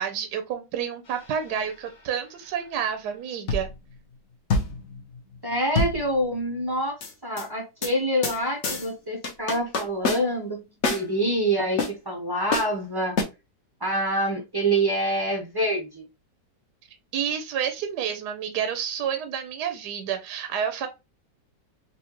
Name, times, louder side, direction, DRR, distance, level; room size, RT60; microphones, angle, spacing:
voice 1, 0.0-3.7 17.1-20.9, right 8 dB, 75° right, 1.1 m, -29 dB
sound 1, 1.1-1.6 3.5-4.0 4.5-6.5 7.0-7.4 7.8-7.9 8.2-8.4 8.6-8.9 9.2-10.5 10.8-11.1 11.8-11.9 12.5-12.7 13.2-13.3, left 3 dB, 50° left, 0.9 m, -27 dB
voice 2, 5.4-10.6 10.9-13.1 13.8-16.0, right 1 dB, 35° right, 0.4 m, -26 dB
4.2 x 2.4 x 2.9 m
omnidirectional pair, 2.0 m